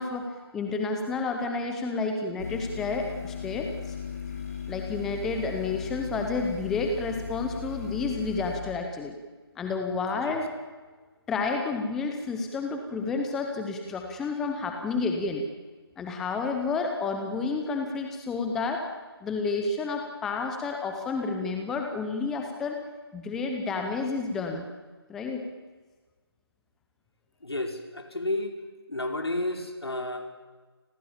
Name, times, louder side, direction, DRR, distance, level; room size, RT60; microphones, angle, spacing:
voice 1, 0.0-4.0 4.7-9.2 9.6-10.5 11.3-15.4 16.0-18.9 19.2-22.8 23.1-24.6 25.1-25.5, left 4 dB, 5° left, 4 dB, 0.7 m, -30 dB
sound 1, 2.4-8.6, left 6 dB, 40° left, 3.4 m, -37 dB
voice 2, 27.4-28.6 28.9-30.3, left 2 dB, 75° left, 4 dB, 5.3 m, -31 dB
29.5 x 21.5 x 7.3 m, 1.4 s
figure-of-eight pair, 165°, 13 cm